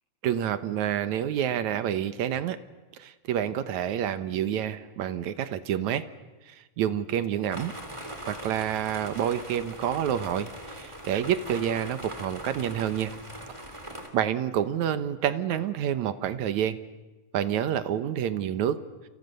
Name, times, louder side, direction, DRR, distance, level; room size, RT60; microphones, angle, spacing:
voice 1, 0.2-2.6 3.0-6.0 6.5-7.7 8.3-13.2 14.1-16.8 17.3-18.8, right 10 dB, 70° right, 12 dB, 2.4 m, -28 dB
sound 1, 7.5-14.1, right 1 dB, 10° right, 2.8 m, -41 dB
29.0 x 28.0 x 6.8 m, 1.2 s
omnidirectional pair, 3.6 m